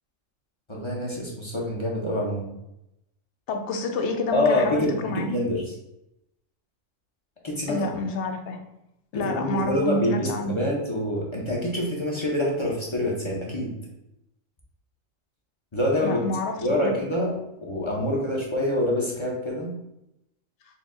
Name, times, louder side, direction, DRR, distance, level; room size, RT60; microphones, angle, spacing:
voice 1, 0.7-2.5 4.3-5.6 7.4-7.8 9.2-13.7 15.7-16.2 16.6-17.3 17.6-19.7, left 1 dB, 30° left, -3 dB, 0.6 m, -26 dB
voice 2, 3.5-5.3 7.7-8.6 9.1-10.6 16.0-17.0, left 2 dB, 65° left, 4 dB, 0.9 m, -29 dB
4.4 x 2.3 x 3.7 m, 0.86 s
omnidirectional pair, 1.4 m